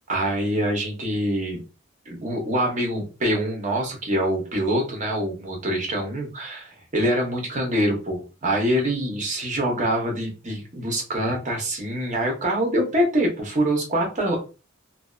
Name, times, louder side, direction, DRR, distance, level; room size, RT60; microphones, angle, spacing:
voice 1, 0.1-1.6 2.1-14.4, right 1 dB, 40° right, 1 dB, 0.7 m, -25 dB
2.6 x 2.1 x 2.3 m, 0.32 s
head